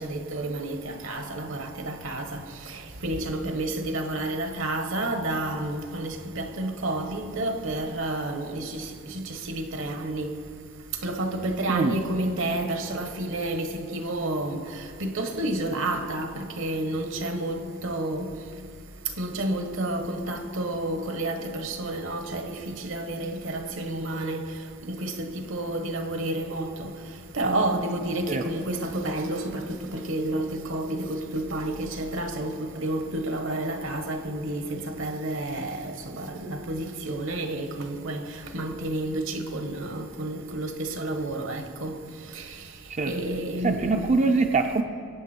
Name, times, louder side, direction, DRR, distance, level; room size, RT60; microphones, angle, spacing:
voice 1, 0.0-10.3 11.0-14.6 15.0-18.3 19.2-24.5 24.9-26.9 27.3-38.2 38.5-41.9 42.3-42.4 43.1-44.0, right 1 dB, 70° right, 1.2 m, -30 dB
voice 2, 43.6-44.8, right 4 dB, 35° right, 0.4 m, -23 dB
22.0 x 8.5 x 4.4 m
head